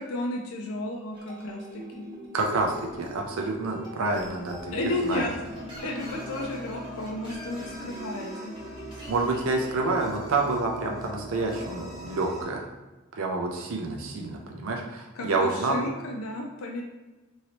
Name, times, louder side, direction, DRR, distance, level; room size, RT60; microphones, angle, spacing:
voice 1, 0.0-2.0 4.7-5.3 5.8-8.5 15.2-16.8, left 1 dB, 85° left, 0 dB, 0.5 m, -33 dB
sound 1, 1.1-10.0, equal, 25° right, 1.0 m, -43 dB
voice 2, 2.3-4.8 5.0-5.3 9.1-12.7 13.1-15.8, right 3 dB, 75° right, 1 dB, 0.5 m, -28 dB
sound 2, 4.5-12.4, right 1 dB, ahead, 0.6 m, -42 dB
3.0 x 2.7 x 2.8 m, 1.1 s
head